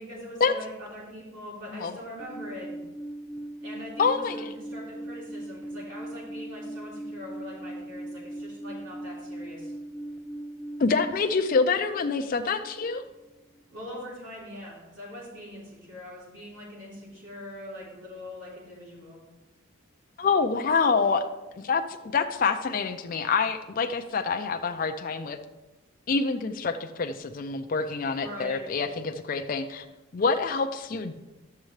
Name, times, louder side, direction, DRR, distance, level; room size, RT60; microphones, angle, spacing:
voice 1, 0.0-2.8 3.6-9.7 13.7-19.2 28.2-28.6, left 1 dB, 70° right, -6 dB, 3.4 m, -42 dB
Alarm, 2.2-11.1, right 1 dB, 5° left, 0.9 m, -39 dB
voice 2, 4.0-4.5 10.8-13.0 20.2-21.3 21.6-25.4 26.1-29.9 30.1-31.2, left 4 dB, 45° left, 6 dB, 0.4 m, -26 dB
11.5 x 7.4 x 3.2 m, 1.1 s
head